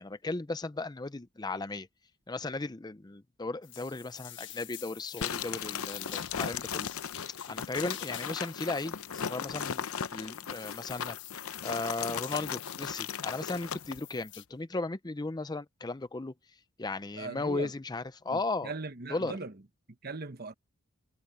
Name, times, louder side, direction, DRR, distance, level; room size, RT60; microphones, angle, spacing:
voice 1, 0.0-1.9 2.3-6.9 7.5-16.3 16.8-18.7 19.1-19.3, left 2 dB, 20° left, 0.5 m, -36 dB
sound 1, 3.6-14.5, left 14 dB, 55° left, 1.4 m, -47 dB
sound 2, 5.2-14.0, left 7 dB, 80° left, 0.7 m, -37 dB
voice 2, 17.1-17.7 18.3-19.5 20.0-20.5, right 3 dB, 45° right, 1.2 m, -39 dB
head